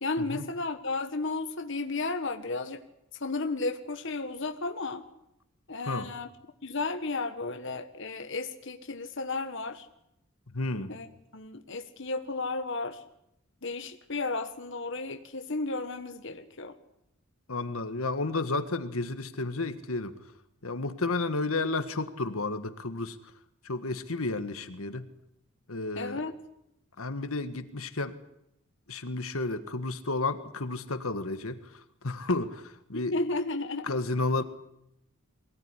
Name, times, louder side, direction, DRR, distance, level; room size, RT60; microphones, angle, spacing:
voice 1, 0.0-2.8 3.2-5.0 5.7-6.3 6.6-9.9 10.9-11.1 11.3-13.0 13.6-16.8 25.9-26.4 33.1-33.9, left 3 dB, 60° left, 6 dB, 1.5 m, -33 dB
voice 2, 10.5-10.9 17.5-20.1 20.6-23.2 23.6-25.1 25.7-26.2 27.0-28.1 28.9-31.6 32.0-33.1 33.9-34.4, left 3 dB, 80° left, 9 dB, 1.7 m, -31 dB
23.5 x 17.5 x 9.9 m, 0.80 s
head